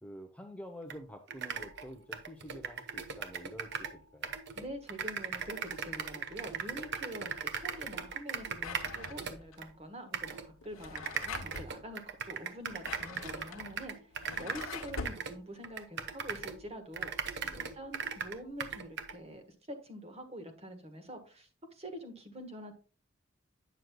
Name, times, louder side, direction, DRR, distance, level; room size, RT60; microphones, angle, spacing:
voice 1, 0.0-4.4 8.6-8.9 14.4-14.6 17.4-17.7, equal, 5° left, 5 dB, 0.6 m, -49 dB
sound 1, 0.9-1.0 1.3-4.0 4.2-9.7 10.1-10.5 10.9-16.6 16.9-19.2, right 7 dB, 60° right, 0.8 m, -38 dB
voice 2, 4.5-14.1 14.4-22.7, equal, 30° right, 6 dB, 1.3 m, -46 dB
Drawer open or close, 8.6-9.6 10.6-11.7 12.6-15.2, left 4 dB, 85° left, 0.8 m, -44 dB
9.1 x 6.4 x 2.2 m, 0.36 s
head